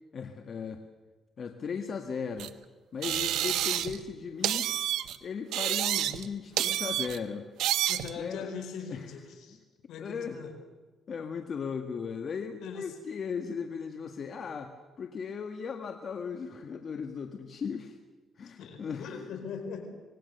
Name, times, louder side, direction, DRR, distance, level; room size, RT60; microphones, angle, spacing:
voice 1, 0.1-0.8 1.4-2.5 2.9-4.7 5.2-7.5 8.2-8.5 8.9-9.1 10.0-10.4 11.1-18.0 18.4-19.1, left 6 dB, 50° left, 6 dB, 1.7 m, -37 dB
sound 1, 2.4-2.5 3.0-4.0 4.4-5.2 5.5-6.3 6.6-7.2 7.6-8.1, right 12 dB, 85° right, 1.1 m, -29 dB
voice 2, 7.9-9.6 9.9-10.5 12.6-12.9 18.6-19.9, left 6 dB, 80° left, 6 dB, 4.6 m, -40 dB
25.5 x 19.5 x 6.8 m, 1.3 s
cardioid pair, 90°, 0 cm